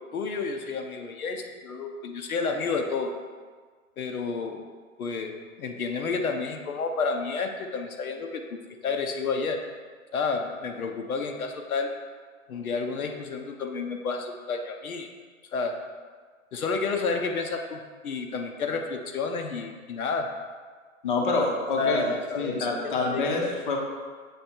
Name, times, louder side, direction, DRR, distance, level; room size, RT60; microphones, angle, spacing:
voice 1, 0.1-3.1 4.0-4.7 5.0-9.6 10.1-11.9 12.5-15.1 15.5-15.8 16.5-20.3 21.8-23.3, left 4 dB, 85° left, 4 dB, 0.9 m, -30 dB
voice 2, 21.0-23.8, left 3 dB, 40° left, 0 dB, 0.7 m, -27 dB
7.1 x 3.3 x 4.4 m, 1.5 s
hypercardioid pair, 170°, 42 cm